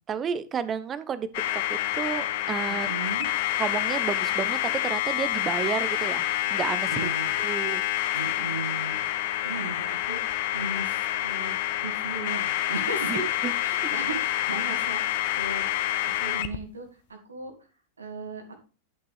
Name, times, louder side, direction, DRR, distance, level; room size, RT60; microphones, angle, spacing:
voice 1, 0.1-1.3 1.5-2.9 3.6-7.0 7.4-7.8 13.1-13.5 13.8-13.9, right 7 dB, 25° right, 0.8 m, -31 dB
sound 1, 1.3-16.6, left 14 dB, 50° left, 0.8 m, -28 dB
voice 2, 2.7-3.3 6.9-7.3 8.1-9.0 9.4-13.3 13.6-15.7 16.0-17.5 18.0-18.6, right 3 dB, 75° right, 2.2 m, -37 dB
11.0 x 6.8 x 3.3 m
figure-of-eight pair, 90°, 0 cm